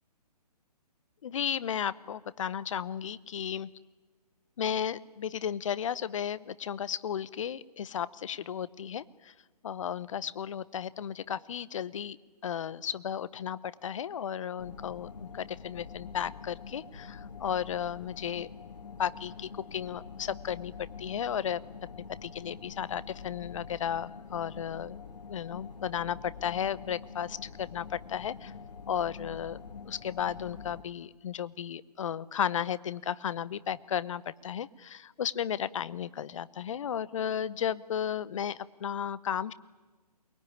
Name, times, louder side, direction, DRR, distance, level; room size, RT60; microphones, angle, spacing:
voice 1, 1.2-3.7 4.6-9.3 9.6-12.2 12.4-18.5 19.0-20.7 21.0-21.6 22.2-25.0 25.3-28.5 28.9-29.6 29.8-39.5, left 9 dB, 50° left, 19 dB, 0.9 m, -34 dB
sound 1, 14.6-30.8, left 5 dB, 75° left, 1.4 m, -46 dB
23.0 x 22.0 x 10.0 m, 1.3 s
figure-of-eight pair, 140°, 21 cm